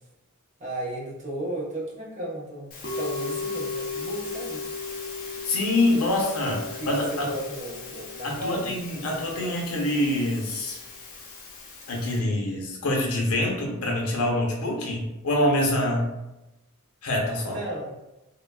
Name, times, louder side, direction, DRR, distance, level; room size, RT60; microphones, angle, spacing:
voice 1, 0.6-4.6 6.8-6.9 7.2-8.7 17.4-18.0, right 1 dB, 30° right, -5 dB, 0.7 m, -34 dB
Musical instrument, 2.7-12.2, left 3 dB, 40° left, 0.5 m, -36 dB
voice 2, 5.4-7.3 8.2-10.8 11.9-16.1 17.0-17.6, left 1 dB, 85° left, -1 dB, 0.7 m, -25 dB
3.1 x 2.2 x 2.2 m, 0.97 s
head